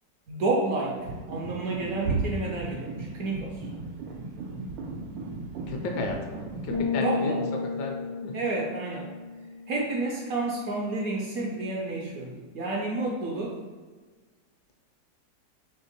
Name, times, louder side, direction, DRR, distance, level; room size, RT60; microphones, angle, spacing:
voice 1, 0.3-3.6 7.0-7.4 8.3-9.1 9.7-13.6, right 2 dB, 70° right, -1 dB, 0.9 m, -30 dB
sound 1, 0.9-6.8, right 3 dB, 90° right, 1.3 m, -35 dB
voice 2, 5.7-7.4 7.7-8.0 8.2-8.4, left 3 dB, 75° left, 2 dB, 1.2 m, -33 dB
sound 2, 6.7-10.4, left 5 dB, 55° left, 0.5 m, -33 dB
3.5 x 3.1 x 4.0 m, 1.4 s
omnidirectional pair, 1.9 m